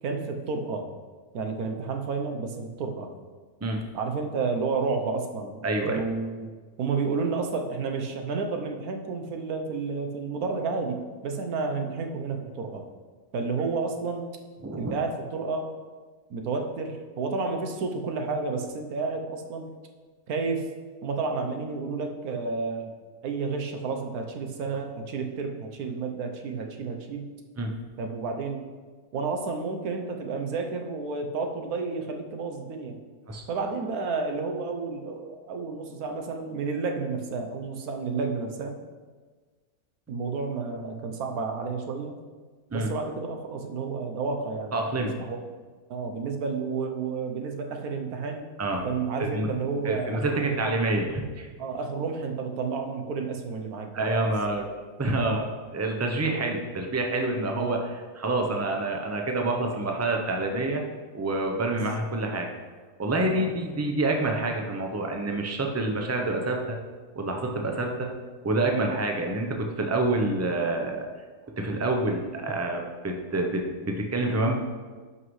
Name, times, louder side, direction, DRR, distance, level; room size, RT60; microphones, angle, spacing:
voice 1, 0.0-0.9 1.3-3.1 3.9-6.5 6.8-12.9 13.3-14.3 14.8-15.8 16.3-19.7 20.3-20.7 21.0-22.9 23.2-27.3 28.0-28.7 29.1-33.0 33.5-38.8 40.1-42.2 42.7-45.4 45.9-48.5 48.8-50.6 51.6-54.3 57.5-57.8 61.7-61.8 63.3-63.5, right 4 dB, 75° right, 4 dB, 1.3 m, -31 dB
voice 2, 5.6-6.0 14.6-14.9 27.6-27.7 33.3-33.4 42.7-42.9 44.7-45.1 48.6-48.8 49.2-49.5 49.8-51.5 53.9-54.7 55.0-60.8 61.1-62.5 63.0-66.8 67.1-68.1 68.4-71.1 71.6-74.6, right 2 dB, 20° right, 2 dB, 0.4 m, -27 dB
11.0 x 5.7 x 3.2 m, 1.4 s
omnidirectional pair, 1.6 m